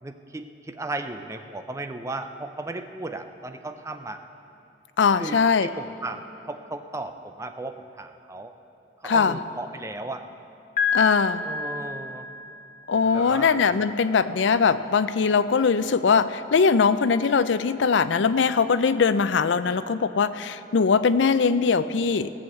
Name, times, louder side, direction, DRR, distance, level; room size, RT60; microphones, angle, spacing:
voice 1, 0.0-4.2 5.2-8.5 9.0-10.2 11.4-12.3 13.1-13.6 14.1-14.4, right 2 dB, 15° right, 8 dB, 0.5 m, -36 dB
voice 2, 5.0-5.7 9.0-9.4 10.9-11.5 12.9-22.3, left 5 dB, 80° left, 13 dB, 0.5 m, -21 dB
Piano, 10.8-12.7, left 5 dB, 40° left, 1.0 m, -28 dB
sound 1, 12.9-16.4 16.8-17.1, right 1 dB, 5° left, 3.5 m, -48 dB
17.5 x 6.3 x 7.8 m, 2.8 s
head